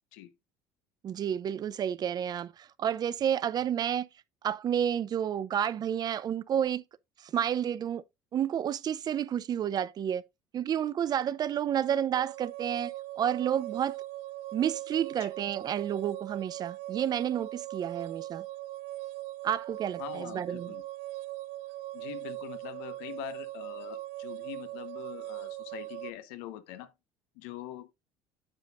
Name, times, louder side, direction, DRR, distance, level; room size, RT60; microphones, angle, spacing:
voice 1, 1.0-4.1 4.4-6.8 7.2-8.0 8.3-10.2 10.5-14.0 14.5-18.4 19.4-20.7, right 9 dB, 40° right, 0.6 m, -30 dB
sound 1, 12.1-26.1, right 16 dB, 75° right, 0.8 m, -40 dB
voice 2, 20.0-20.8 21.9-26.9 27.4-27.9, left 13 dB, 85° left, 1.3 m, -43 dB
9.0 x 7.3 x 2.5 m
supercardioid pair, 105°, 10 cm